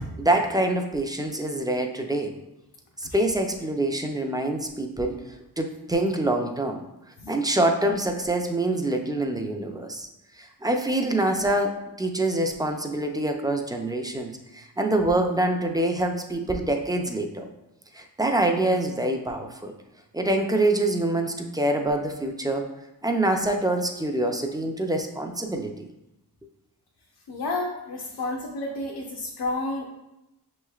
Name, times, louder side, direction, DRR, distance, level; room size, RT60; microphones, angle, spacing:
voice 1, 0.2-2.3 3.0-5.2 5.6-6.8 7.3-10.1 10.4-17.5 17.9-19.7 20.1-22.7 23.0-25.7, right 1 dB, 10° right, 4 dB, 0.3 m, -25 dB
voice 2, 27.3-29.8, left 2 dB, 80° left, -1 dB, 0.7 m, -30 dB
6.3 x 3.1 x 2.3 m, 0.91 s
wide cardioid pair, 110°, 39 cm